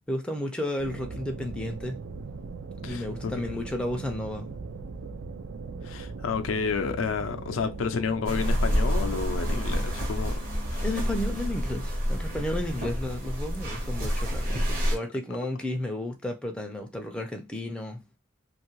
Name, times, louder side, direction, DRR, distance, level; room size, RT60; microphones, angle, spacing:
voice 1, 0.1-2.1 2.8-4.5 10.8-18.1, left 1 dB, 5° left, 0.4 m, -33 dB
sound 1, 0.8-9.8, right 4 dB, 75° right, 0.4 m, -39 dB
voice 2, 2.8-3.3 5.8-10.4 10.7-10.8 14.0-14.1, left 5 dB, 85° left, 0.4 m, -30 dB
sound 2, 8.2-15.0, equal, 45° right, 0.9 m, -28 dB
2.6 x 2.4 x 3.0 m
head